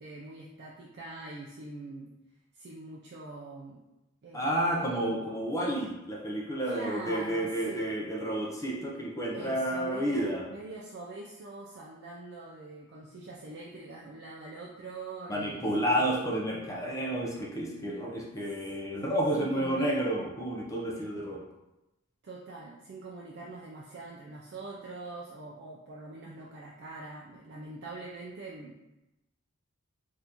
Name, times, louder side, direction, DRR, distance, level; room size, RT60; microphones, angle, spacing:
voice 1, 0.0-2.1 2.5-3.8 4.2-4.7 6.7-7.9 9.3-16.1 19.3-19.9 20.9-21.0 22.2-28.8, right 2 dB, 50° right, -3 dB, 0.4 m, -43 dB
voice 2, 4.3-10.4 15.3-21.4, right 1 dB, 15° left, -2 dB, 0.5 m, -30 dB
3.6 x 2.5 x 2.8 m, 0.97 s
head